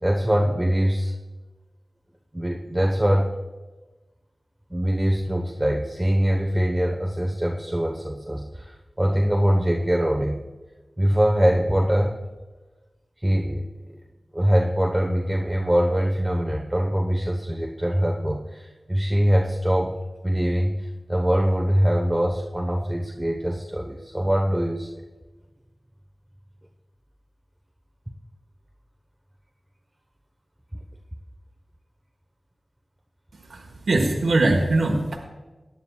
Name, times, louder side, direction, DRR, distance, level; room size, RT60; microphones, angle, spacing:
voice 1, 0.0-1.1 2.3-3.3 4.7-10.4 11.0-12.2 13.2-14.0 14.3-19.9 20.2-24.9, equal, 15° right, 0 dB, 1.1 m, -23 dB
voice 2, 33.4-35.2, right 2 dB, 85° right, 0 dB, 1.3 m, -22 dB
17.0 x 10.5 x 2.4 m, 1.2 s
cardioid pair, 40°, 0 cm